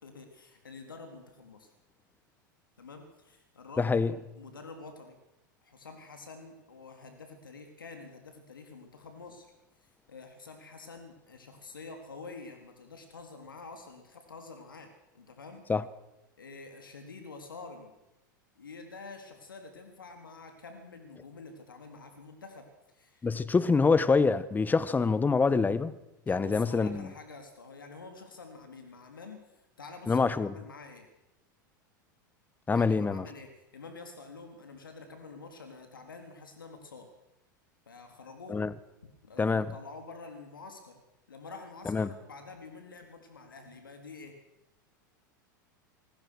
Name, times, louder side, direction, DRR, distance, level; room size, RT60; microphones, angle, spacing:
voice 1, 0.0-1.7 2.8-5.2 5.6-9.5 9.8-15.6 16.4-17.9 18.6-23.7 26.3-31.1 32.7-37.1 37.9-38.6 39.2-41.0 41.3-44.4, left 4 dB, 90° left, 3.8 m, -48 dB
voice 2, 3.8-4.1 15.7-15.8 23.2-25.9 26.3-27.1 30.1-30.5 32.7-33.2 38.5-38.7 39.4-39.7 41.9-42.1, left 4 dB, 15° left, 1.6 m, -25 dB
27.5 x 21.5 x 6.4 m
hypercardioid pair, 95°, 11 cm